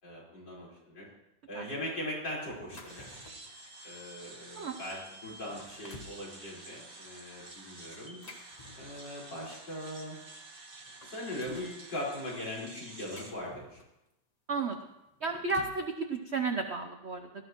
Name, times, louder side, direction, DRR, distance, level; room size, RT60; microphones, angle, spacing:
voice 1, 0.0-1.1 1.5-3.1 3.8-8.2 8.8-10.2 11.0-13.8, left 1 dB, 55° left, -6 dB, 5.4 m, -40 dB
sound 1, 2.5-3.5 4.1-4.3 4.9-5.0 5.4-6.2 7.9-9.3 10.3-10.4 10.7-11.8 12.6-14.1 15.1-15.9, left 2 dB, 35° left, 0.7 m, -51 dB
sound 2, 2.9-13.3, right 2 dB, 30° right, 1.3 m, -50 dB
voice 2, 15.2-17.4, right 4 dB, 80° right, 6 dB, 0.6 m, -33 dB
18.0 x 13.0 x 3.0 m, 0.88 s
omnidirectional pair, 2.2 m